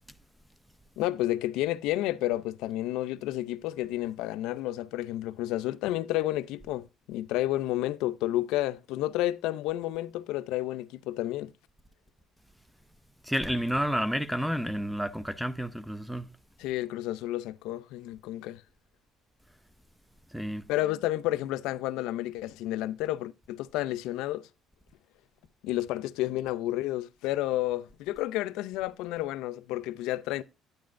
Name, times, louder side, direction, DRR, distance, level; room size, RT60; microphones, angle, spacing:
voice 1, 1.0-11.5 16.6-18.6 20.7-24.5 25.6-30.4, left 15 dB, 90° left, 0.5 m, -31 dB
voice 2, 13.2-16.3 20.3-20.6, equal, ahead, 0.5 m, -30 dB
10.5 x 9.5 x 2.5 m
cardioid pair, 125°, 0 cm